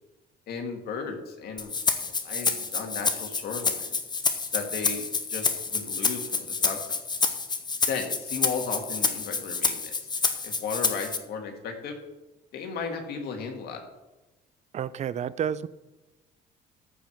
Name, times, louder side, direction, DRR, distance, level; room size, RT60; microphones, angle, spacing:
voice 1, 0.5-4.0 4.5-7.0 7.9-10.1 10.4-12.0 12.5-13.8, left 5 dB, 70° left, 3 dB, 2.1 m, -35 dB
Rattle (instrument), 1.6-11.2, left 4 dB, 25° left, 1.0 m, -28 dB
voice 2, 14.7-15.7, right 8 dB, 45° right, 17 dB, 0.5 m, -30 dB
14.0 x 4.8 x 5.8 m, 1.1 s
cardioid pair, 110°, 17 cm